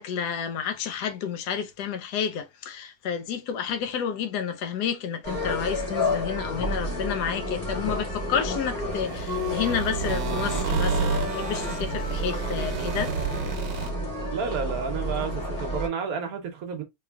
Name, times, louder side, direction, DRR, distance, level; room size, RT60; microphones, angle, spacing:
voice 1, 0.0-13.1, left 8 dB, 70° left, 1.1 m, -30 dB
sound 1, 5.2-15.9, left 1 dB, 30° left, 2.0 m, -30 dB
sound 2, 8.9-13.9, right 5 dB, 75° right, 1.4 m, -30 dB
voice 2, 14.3-16.8, right 6 dB, 60° right, 1.2 m, -31 dB
3.6 x 3.1 x 2.3 m
omnidirectional pair, 1.9 m